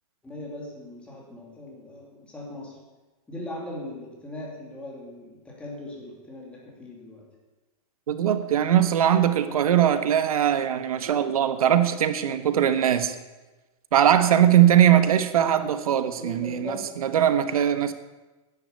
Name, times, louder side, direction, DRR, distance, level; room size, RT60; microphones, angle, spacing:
voice 1, 0.2-2.8 3.3-7.3 16.1-17.0, left 1 dB, 5° left, -2 dB, 2.9 m, -39 dB
voice 2, 8.1-13.1 13.9-16.8 17.0-17.9, right 10 dB, 90° right, 10 dB, 1.3 m, -20 dB
11.0 x 10.0 x 8.5 m, 1.2 s
supercardioid pair, 170°, 18 cm